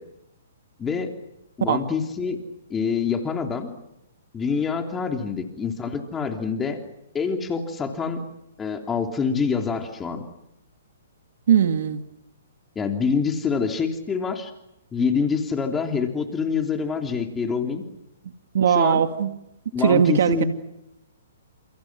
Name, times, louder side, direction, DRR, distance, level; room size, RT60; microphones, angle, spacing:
voice 1, 0.8-1.1 1.6-2.4 2.7-3.7 4.3-6.8 7.1-8.2 8.6-10.2 12.7-14.5 14.9-17.8 18.7-19.0 19.7-20.4, left 5 dB, 15° left, 4 dB, 3.2 m, -26 dB
voice 2, 11.5-12.0 18.5-19.3 19.8-20.4, right 8 dB, 65° right, 8 dB, 2.3 m, -19 dB
30.0 x 28.5 x 6.2 m, 0.88 s
hypercardioid pair, 145°, 0 cm